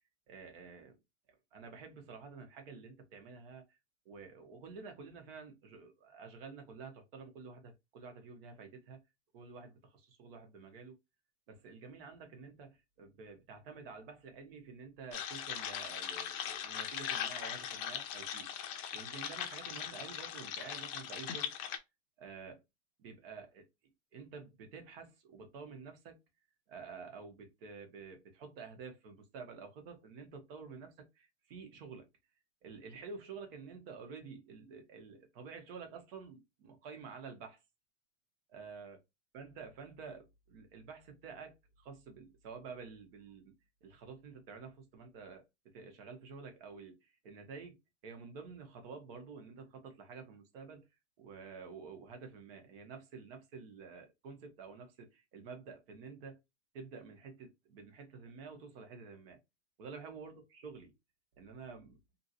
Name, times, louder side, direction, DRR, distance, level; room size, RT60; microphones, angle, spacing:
voice 1, 0.3-1.0 1.5-3.6 4.0-9.0 9.3-10.9 11.5-21.5 22.2-22.6 23.0-23.7 24.1-26.2 26.7-32.1 32.6-37.6 38.5-39.0 39.3-43.5 43.8-50.9 51.2-56.4 56.7-59.4 59.8-60.9 61.4-62.0, right 5 dB, 50° right, 1.2 m, -50 dB
sound 1, 15.1-21.8, left 9 dB, 35° left, 0.6 m, -40 dB
2.8 x 2.7 x 2.7 m
hypercardioid pair, 135°, 36 cm